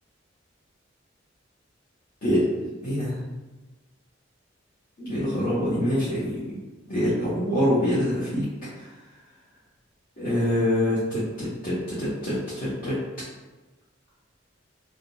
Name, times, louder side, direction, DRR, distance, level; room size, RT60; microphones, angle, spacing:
voice 1, 2.8-3.2 5.0-6.4 6.9-8.5 8.7-8.9 10.2-13.0, left 1 dB, 50° left, -11 dB, 0.8 m, -25 dB
3.4 x 2.2 x 2.6 m, 1.2 s
head